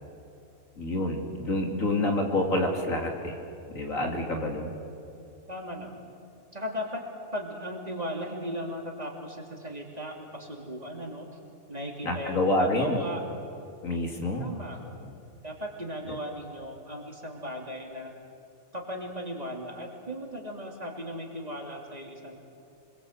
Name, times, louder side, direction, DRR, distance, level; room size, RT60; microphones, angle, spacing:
voice 1, 0.8-3.4 3.7-4.7 12.0-13.0 13.8-14.5 15.0-15.1, left 1 dB, 65° left, 2 dB, 3.2 m, -27 dB
voice 2, 5.5-6.0 6.5-7.0 7.3-11.4 11.7-13.2 14.4-14.8 15.4-18.1 18.7-22.4, equal, 30° right, 1 dB, 2.9 m, -37 dB
26.0 x 22.0 x 8.0 m, 2.7 s
omnidirectional pair, 1.5 m